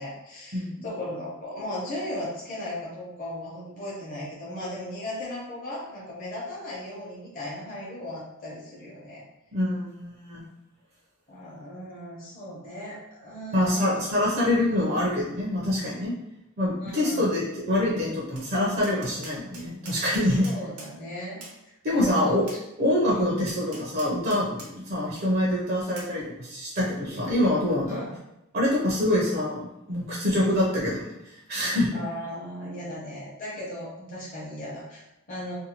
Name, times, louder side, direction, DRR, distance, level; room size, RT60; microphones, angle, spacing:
voice 1, 0.0-9.2 11.3-14.0 16.8-17.4 20.4-22.4 23.1-23.3 27.9-28.2 31.9-35.6, left 1 dB, 40° left, -7 dB, 0.8 m, -37 dB
voice 2, 0.5-0.8 9.5-10.4 13.5-16.1 16.6-20.4 21.8-22.4 22.8-28.0 28.5-31.9, left 1 dB, 45° right, -4 dB, 0.5 m, -25 dB
Tap, 18.4-18.5 18.8-20.9 21.4-21.6 22.5-22.6 23.5-24.7 25.2-25.3 26.0-26.1, right 2 dB, 90° right, 0.8 m, -43 dB
2.6 x 2.2 x 2.8 m, 0.91 s
head